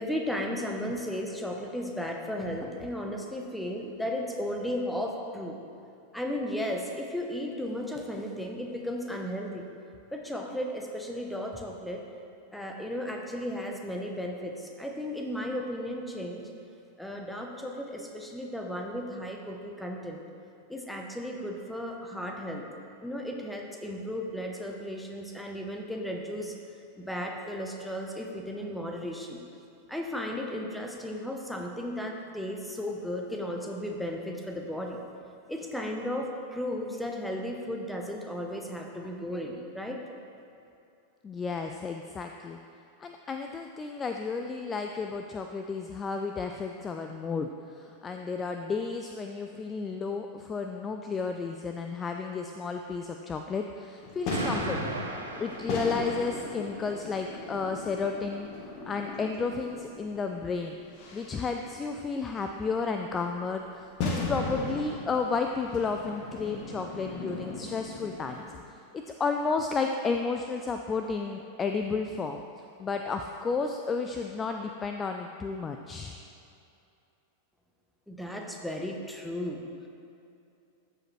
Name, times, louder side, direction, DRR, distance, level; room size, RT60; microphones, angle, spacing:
voice 1, 0.0-5.6 6.1-9.7 10.1-12.0 12.5-16.5 17.0-20.2 20.7-22.6 23.0-26.5 27.0-29.4 29.9-35.0 35.5-40.0 78.1-79.9, left 1 dB, 5° left, 1 dB, 0.9 m, -35 dB
voice 2, 41.2-42.6 43.0-54.9 55.4-58.5 58.9-60.8 61.1-68.4 68.7-68.8 69.1-72.4 72.8-76.1, left 4 dB, 20° left, 4 dB, 0.3 m, -32 dB
sound 1, 54.0-68.6, left 3 dB, 40° left, 1.2 m, -38 dB
Explosion, 54.3-56.5, right 3 dB, 75° right, 0.7 m, -36 dB
13.5 x 4.8 x 3.2 m, 2.7 s
figure-of-eight pair, 90°, 0 cm